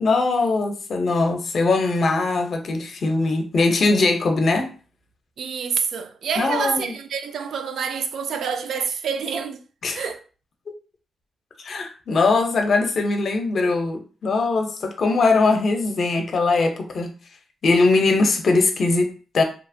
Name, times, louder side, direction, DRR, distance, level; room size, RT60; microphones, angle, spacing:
voice 1, 0.0-4.7 6.4-6.9 9.8-10.0 11.6-17.1 17.6-19.4, left 3 dB, 50° left, 0.5 m, -21 dB
voice 2, 5.4-9.6 9.9-10.2, right 6 dB, 70° right, 0.3 m, -27 dB
2.8 x 2.0 x 2.6 m
cardioid pair, 120°, 0 cm